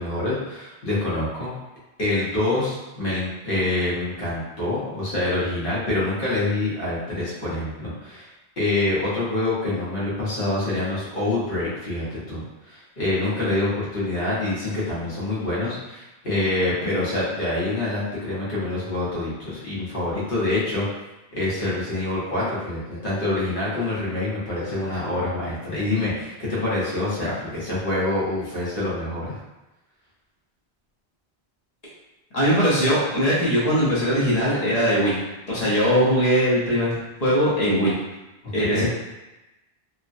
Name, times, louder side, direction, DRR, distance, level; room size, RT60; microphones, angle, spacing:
voice 1, 0.0-1.5 2.0-8.3 8.6-20.8 21.3-29.4 38.6-38.9, left 2 dB, 55° left, -8 dB, 1.1 m, -26 dB
voice 2, 32.3-35.1 35.5-36.9 37.2-37.9 38.5-38.9, equal, 40° left, -8 dB, 0.9 m, -20 dB
3.1 x 2.1 x 2.5 m, 1.0 s
omnidirectional pair, 1.1 m